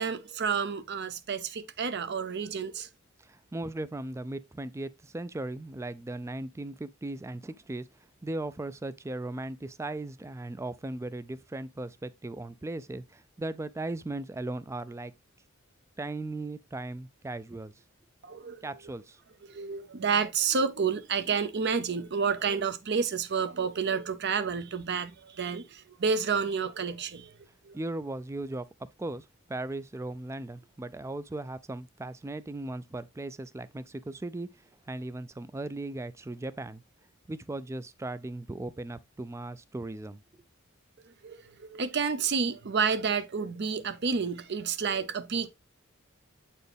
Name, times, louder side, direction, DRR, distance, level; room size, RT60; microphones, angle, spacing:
voice 1, 0.0-2.9 18.2-18.6 19.4-27.3 27.6-27.8 41.2-45.5, right 6 dB, 55° right, 0.6 m, -30 dB
voice 2, 3.2-7.9 8.2-15.1 16.0-17.7 18.6-19.2 27.7-28.7 29.0-34.5 34.9-36.8 37.3-40.2, right 2 dB, 15° right, 0.3 m, -37 dB
7.9 x 4.3 x 3.4 m
head